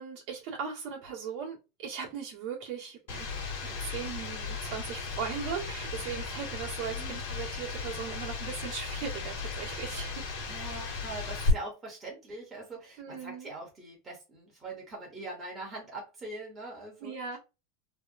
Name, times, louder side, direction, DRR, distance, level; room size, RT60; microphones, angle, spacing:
voice 1, 0.0-10.2 13.0-13.5 17.0-17.4, right 6 dB, 45° right, 1.6 m, -38 dB
sound 1, 3.1-11.5, left 3 dB, 70° left, 1.6 m, -36 dB
voice 2, 10.4-17.1, right 2 dB, 15° right, 1.5 m, -42 dB
3.4 x 2.4 x 2.6 m
supercardioid pair, 165°, 0 cm